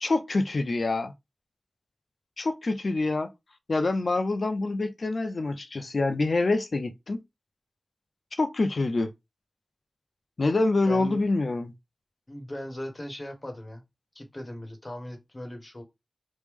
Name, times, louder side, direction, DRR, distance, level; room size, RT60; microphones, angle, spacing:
voice 1, 0.0-1.1 2.4-3.3 3.7-7.2 8.4-9.1 10.4-11.7, left 2 dB, 65° left, 0.5 m, -26 dB
voice 2, 10.8-11.2 12.3-13.8 14.1-15.8, left 1 dB, 30° left, 1.1 m, -38 dB
3.2 x 2.0 x 3.5 m
wide cardioid pair, 75°, 0 cm